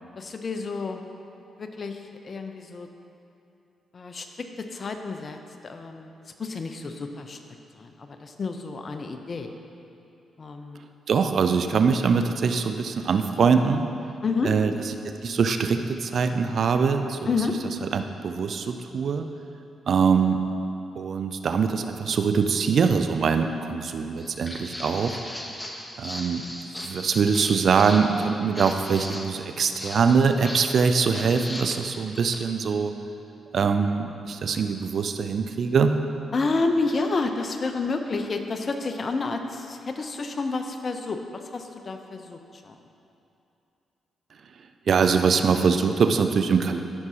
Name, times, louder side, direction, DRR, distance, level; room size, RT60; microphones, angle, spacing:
voice 1, 0.2-1.0 1.6-2.9 3.9-5.4 5.6-6.1 6.4-7.4 7.7-9.5 10.4-10.9 14.2-14.5 17.3-17.6 36.3-42.8, left 3 dB, 50° left, 6 dB, 0.7 m, -30 dB
voice 2, 11.1-13.8 14.4-14.7 15.2-17.2 17.8-19.3 19.9-20.4 21.0-25.2 26.0-26.4 26.8-32.9 33.5-35.9 44.9-46.8, right 5 dB, 60° right, 7 dB, 0.5 m, -23 dB
Walk footsteps, 24.2-32.5, left 1 dB, 20° left, 1.2 m, -38 dB
14.5 x 6.0 x 2.9 m, 2.7 s
hypercardioid pair, 45°, 0 cm